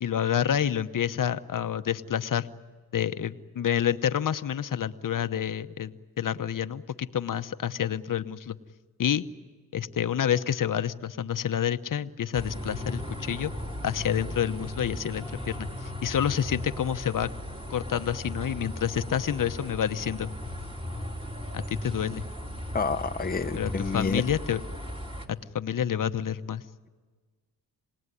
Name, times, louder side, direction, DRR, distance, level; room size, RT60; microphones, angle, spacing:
voice 1, 0.0-2.5 2.9-8.6 9.0-9.2 9.7-13.5 13.8-17.3 17.7-20.3 21.5-22.2 23.5-24.6 25.5-26.6, left 9 dB, 60° left, 11 dB, 1.0 m, -28 dB
sound 1, 12.3-25.3, left 1 dB, 15° right, 3.2 m, -37 dB
voice 2, 22.7-24.2, left 4 dB, 25° left, 8 dB, 0.9 m, -29 dB
27.5 x 19.0 x 9.9 m, 1.4 s
cardioid pair, 80°, 37 cm